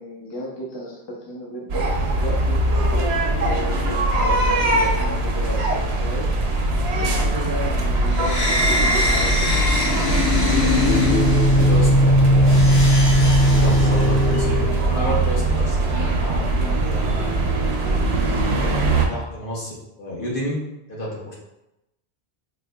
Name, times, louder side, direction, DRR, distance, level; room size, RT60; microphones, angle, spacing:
voice 1, 0.0-6.3 7.0-9.8, equal, 30° left, -3 dB, 0.6 m, -34 dB
sound 1, 1.7-19.1, right 2 dB, 85° right, 0.8 m, -21 dB
sound 2, 8.2-14.8, equal, 85° left, 1.2 m, -18 dB
voice 2, 11.5-13.0 13.5-17.5 18.5-20.6 20.9-21.3, equal, 60° left, -5 dB, 1.1 m, -31 dB
4.1 x 2.6 x 2.2 m, 0.90 s
omnidirectional pair, 1.0 m